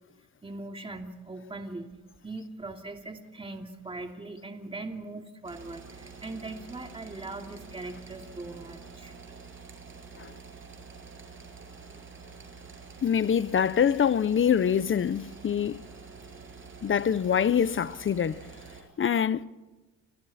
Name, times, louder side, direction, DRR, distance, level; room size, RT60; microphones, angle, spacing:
voice 1, 0.4-1.9 2.2-9.3, right 2 dB, 20° right, 2.8 m, -40 dB
sound 1, 5.4-18.8, right 4 dB, 40° right, 7.5 m, -47 dB
voice 2, 13.0-15.8 16.8-18.4 19.0-19.4, left 8 dB, 40° left, 0.9 m, -25 dB
30.0 x 26.0 x 4.4 m
cardioid pair, 90°, 30 cm